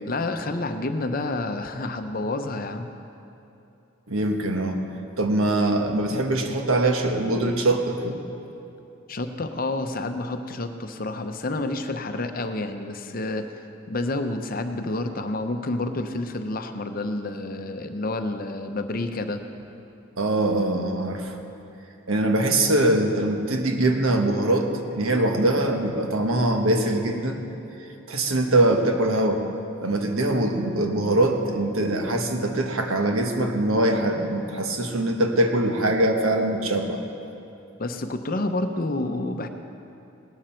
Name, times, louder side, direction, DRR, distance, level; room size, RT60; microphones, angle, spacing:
voice 1, 0.0-2.9 9.1-13.5 13.9-19.4 37.8-39.5, left 2 dB, 45° left, 7 dB, 0.7 m, -29 dB
voice 2, 4.1-4.8 5.2-8.2 20.2-21.4 22.1-27.4 28.1-29.4 29.8-37.0, right 1 dB, 90° right, 4 dB, 1.3 m, -23 dB
18.0 x 12.5 x 4.5 m, 2.8 s
head